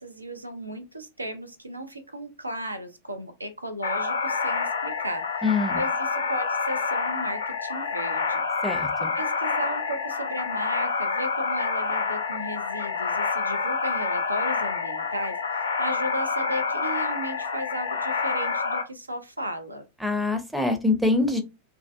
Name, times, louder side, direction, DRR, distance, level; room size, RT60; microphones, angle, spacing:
voice 1, 0.0-8.4 8.7-19.8, equal, 85° right, 0.4 m, -35 dB
sound 1, 3.8-18.8, left 5 dB, 70° left, 0.4 m, -28 dB
voice 2, 5.4-5.8 8.6-9.1 20.0-21.4, left 3 dB, ahead, 0.5 m, -24 dB
2.3 x 2.2 x 2.5 m
figure-of-eight pair, 90°, 0 cm